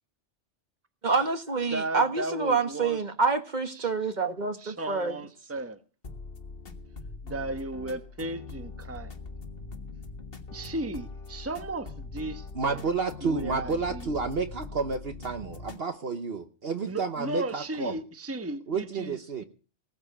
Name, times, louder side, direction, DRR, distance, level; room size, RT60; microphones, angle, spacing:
voice 1, 1.0-5.2, right 4 dB, 40° right, 1.6 m, -27 dB
voice 2, 1.7-3.0 3.8-3.9 4.6-5.8 7.2-9.1 10.5-12.8 13.2-14.0 16.8-19.4, right 2 dB, 10° right, 1.1 m, -35 dB
sound 1, 6.0-15.8, left 3 dB, 50° left, 1.8 m, -42 dB
voice 3, 12.5-18.0 18.7-19.4, right 4 dB, 55° right, 1.2 m, -30 dB
19.5 x 7.4 x 7.2 m
omnidirectional pair, 1.2 m